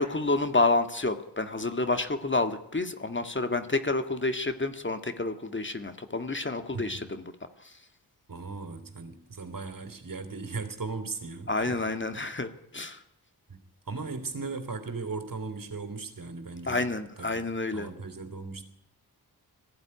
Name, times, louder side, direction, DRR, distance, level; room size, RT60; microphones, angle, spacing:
voice 1, 0.0-7.3 7.6-7.7 11.5-13.0 16.7-17.9, left 2 dB, 30° left, 9 dB, 1.9 m, -29 dB
voice 2, 6.7-7.0 8.3-11.8 13.5-13.6 13.9-16.8 17.2-17.5 17.7-18.6, right 4 dB, 55° right, 9 dB, 3.2 m, -37 dB
20.0 x 15.0 x 10.0 m, 0.81 s
cardioid pair, 60°, 40 cm